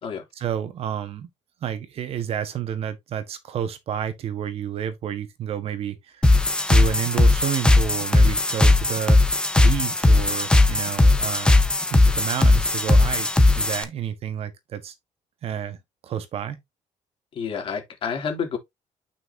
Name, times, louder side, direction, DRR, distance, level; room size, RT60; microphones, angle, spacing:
voice 1, 0.4-1.3 1.6-6.2 6.7-9.2 9.6-11.5 11.9-13.3 13.5-14.9 15.4-15.8 16.0-16.6, right 9 dB, 55° right, 1.4 m, -30 dB
sound 1, 6.2-13.8, left 2 dB, 5° left, 1.1 m, -18 dB
voice 2, 17.3-18.6, left 6 dB, 45° left, 3.0 m, -29 dB
9.1 x 5.8 x 2.8 m
cardioid pair, 150°, 12 cm